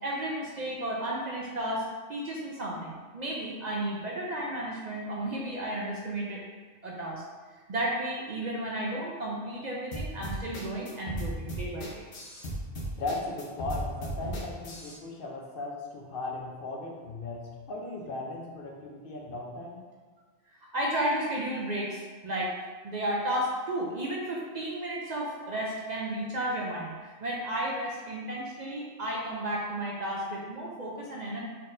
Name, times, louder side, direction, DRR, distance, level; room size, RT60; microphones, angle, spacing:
voice 1, 0.0-1.8 2.1-6.4 6.8-7.2 7.7-12.1 20.7-22.5 22.8-31.4, right 1 dB, 50° right, -3 dB, 0.6 m, -33 dB
sound 1, 9.9-15.0, right 1 dB, 80° left, 1.2 m, -35 dB
voice 2, 13.0-19.8, left 2 dB, 60° left, -1 dB, 0.7 m, -37 dB
4.1 x 4.1 x 2.5 m, 1.4 s
omnidirectional pair, 1.2 m